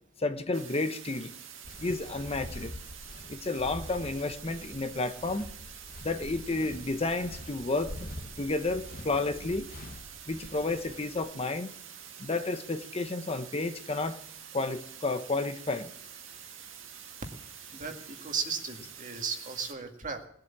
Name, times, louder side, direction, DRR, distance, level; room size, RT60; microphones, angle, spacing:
voice 1, 0.2-1.3 1.8-2.8 3.3-5.5 6.0-8.1 8.4-9.7 10.3-11.7 12.2-14.2 14.5-15.9, left 3 dB, 30° left, 9 dB, 0.9 m, -31 dB
sound 1, 0.5-19.7, right 8 dB, 75° right, 2.0 m, -47 dB
Walk footsteps, 1.6-11.3, left 1 dB, 45° left, 1.5 m, -45 dB
voice 2, 17.7-20.2, right 5 dB, 40° right, 4 dB, 2.0 m, -35 dB
19.5 x 7.9 x 8.6 m, 0.69 s
head